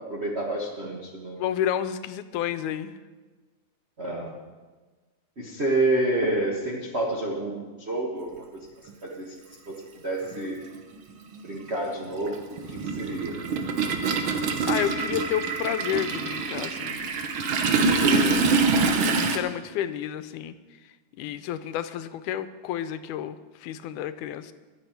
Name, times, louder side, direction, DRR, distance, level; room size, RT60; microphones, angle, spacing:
voice 1, 0.0-1.4 4.0-4.3 5.4-8.4 9.0-9.3 9.7-10.6 11.4-13.4, right 2 dB, 40° right, -3 dB, 0.9 m, -29 dB
voice 2, 1.4-3.0 14.7-17.1 17.8-18.5 19.0-20.6 21.2-24.5, left 10 dB, 85° left, 12 dB, 2.1 m, -31 dB
Toilet flush, 8.9-9.0 10.3-10.4 10.7-19.4, right 4 dB, 60° right, 1.4 m, -25 dB
22.5 x 7.8 x 4.6 m, 1.3 s
omnidirectional pair, 3.5 m